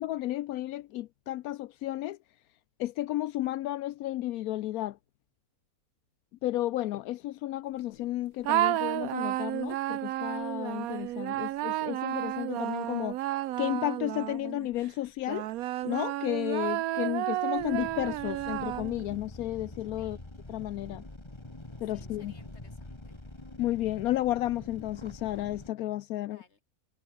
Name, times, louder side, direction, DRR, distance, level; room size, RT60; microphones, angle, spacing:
voice 1, 0.0-2.2 2.8-5.0 6.4-13.2 13.6-15.5 15.8-20.2 20.5-21.0 21.8-22.3 23.6-26.4, left 15 dB, 80° left, 1.0 m, -32 dB
sound 1, 8.4-14.7 15.3-19.2, right 15 dB, 80° right, 1.0 m, -32 dB
sound 2, 17.6-25.7, left 2 dB, 20° left, 2.3 m, -46 dB
voice 2, 19.9-20.3 21.8-23.1 26.2-26.6, left 4 dB, 45° left, 3.4 m, -61 dB
omnidirectional pair, 1.5 m